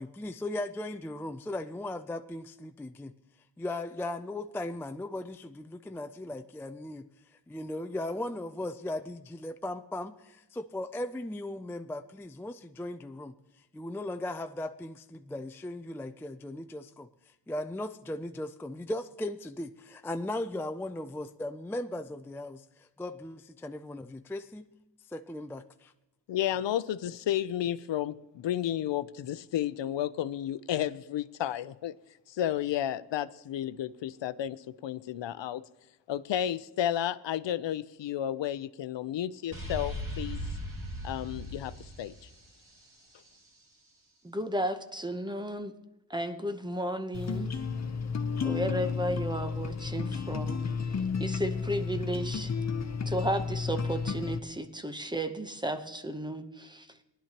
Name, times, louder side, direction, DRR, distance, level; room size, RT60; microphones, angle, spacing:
voice 1, 0.0-3.1 3.6-13.4 13.7-17.1 17.5-24.7 25.1-25.9, left 1 dB, 5° left, 8 dB, 0.3 m, -37 dB
voice 2, 26.3-31.9 32.3-35.6 36.1-40.4 41.0-42.1, left 11 dB, 85° left, 15 dB, 0.6 m, -32 dB
sound 1, 39.5-43.3, equal, 50° right, 2.4 m, -38 dB
voice 3, 44.2-45.7 46.1-47.5 48.4-50.6 51.2-52.5 53.1-56.9, right 1 dB, 10° right, 8 dB, 0.8 m, -33 dB
sound 2, 47.1-54.4, left 5 dB, 40° left, 0.7 m, -32 dB
19.0 x 11.0 x 2.9 m, 0.95 s
wide cardioid pair, 130°, 42 cm